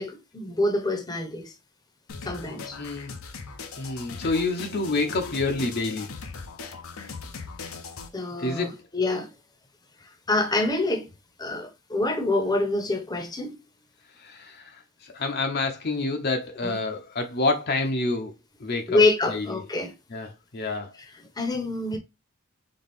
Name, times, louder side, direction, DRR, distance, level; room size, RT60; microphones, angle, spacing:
voice 1, 0.0-1.5 2.2-2.8 8.1-9.3 10.3-11.1 11.4-13.5 16.6-16.8 18.9-19.9 21.4-22.0, left 2 dB, 20° left, 0.8 m, -26 dB
sound 1, 2.1-8.1, left 4 dB, 85° left, 0.8 m, -39 dB
voice 2, 2.8-3.1 3.8-6.1 8.4-8.8 14.2-14.8 15.0-18.3 18.6-19.0 19.3-19.4 20.1-20.9, left 3 dB, 50° left, 0.7 m, -28 dB
4.2 x 3.5 x 3.5 m
head